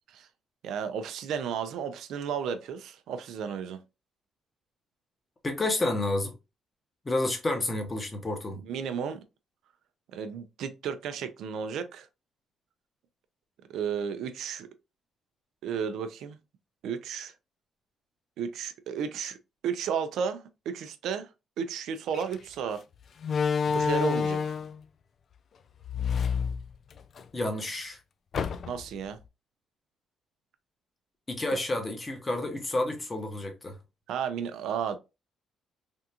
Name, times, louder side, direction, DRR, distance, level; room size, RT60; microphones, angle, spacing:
voice 1, 0.6-3.8 8.5-9.2 10.1-12.1 13.7-14.7 15.6-16.4 16.8-17.3 18.4-19.4 19.6-21.3 21.6-22.8 23.7-24.4 28.7-29.2 31.5-31.6 34.1-35.0, right 7 dB, 80° right, 0.4 m, -33 dB
voice 2, 5.4-6.3 7.0-8.6 27.3-28.0 31.3-33.8, left 2 dB, 25° left, 0.9 m, -30 dB
Slam, 22.1-22.3 23.2-24.8 25.8-27.2 27.6-27.7 28.3-29.0, left 6 dB, 55° left, 0.3 m, -28 dB
3.4 x 2.4 x 2.8 m
cardioid pair, 90°, 0 cm